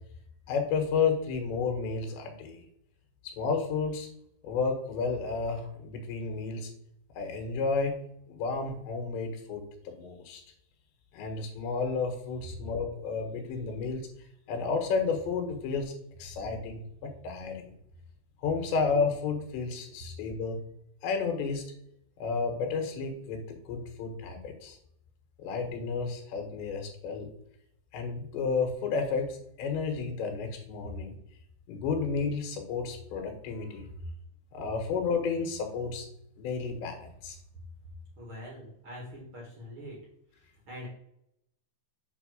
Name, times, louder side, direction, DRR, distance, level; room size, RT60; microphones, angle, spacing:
voice 1, 0.5-2.6 3.4-4.1 4.4-6.7 7.2-8.0 8.3-10.4 11.1-14.1 14.5-15.9 16.2-17.7 18.4-20.6 21.0-21.7 22.2-24.8 25.4-27.3 27.9-31.1 31.7-33.9 34.5-36.1 36.4-37.4, left 5 dB, 85° left, 4 dB, 3.7 m, -31 dB
voice 2, 38.2-40.0 40.6-40.9, equal, 45° right, -3 dB, 1.8 m, -43 dB
8.1 x 3.8 x 6.5 m, 0.74 s
omnidirectional pair, 5.0 m